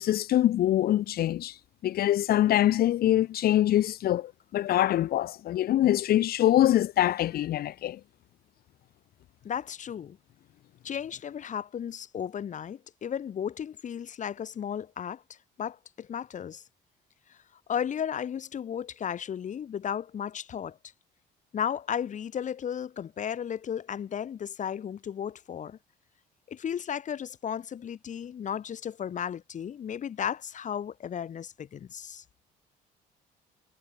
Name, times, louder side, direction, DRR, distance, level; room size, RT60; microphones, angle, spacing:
voice 1, 0.0-1.5 1.8-8.0, left 13 dB, 65° left, 1.5 m, -24 dB
voice 2, 9.4-10.2 10.8-15.2 15.6-16.6 17.3-17.4 17.7-20.8 21.5-25.8 26.5-32.2, left 8 dB, 45° left, 4.5 m, -34 dB
cardioid pair, 110°, 17 cm